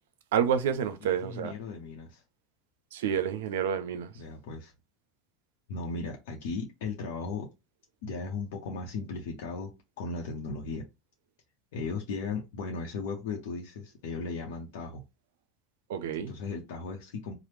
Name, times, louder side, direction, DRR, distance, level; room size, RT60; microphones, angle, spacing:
voice 1, 0.3-1.5 2.9-4.1 15.9-16.3, right 8 dB, 80° right, 0.5 m, -29 dB
voice 2, 1.0-2.2 4.2-4.7 5.7-7.5 8.0-10.8 11.7-15.0 16.2-17.3, left 4 dB, 75° left, 0.7 m, -36 dB
3.0 x 2.0 x 3.3 m
supercardioid pair, 110°, 0 cm